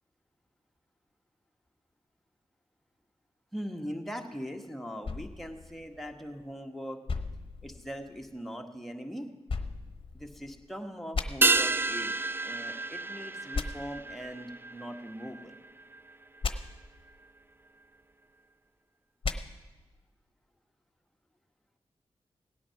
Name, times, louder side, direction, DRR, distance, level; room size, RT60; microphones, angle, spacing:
voice 1, 3.5-7.0 7.6-9.3 10.1-15.6, equal, ahead, 3 dB, 1.5 m, -41 dB
sound 1, 5.0-6.5 7.1-8.3 9.5-10.6 11.1-11.3 13.5-13.7 16.4-16.5 19.2-19.4, left 4 dB, 50° left, 0.9 m, -36 dB
sound 2, 11.4-16.1 16.4-16.5, right 3 dB, 20° right, 0.4 m, -30 dB
17.0 x 8.6 x 5.9 m, 1.2 s
cardioid pair, 50°, 11 cm